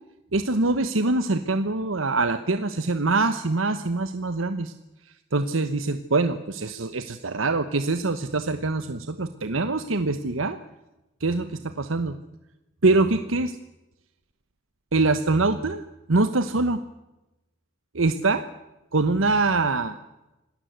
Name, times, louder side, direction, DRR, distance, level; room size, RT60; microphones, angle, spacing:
voice 1, 0.3-4.7 5.3-10.6 11.2-12.1 12.8-13.6 14.9-15.8 16.1-16.8 17.9-18.4 18.9-19.9, right 3 dB, 90° right, 10 dB, 1.1 m, -24 dB
27.0 x 18.0 x 8.1 m, 0.98 s
head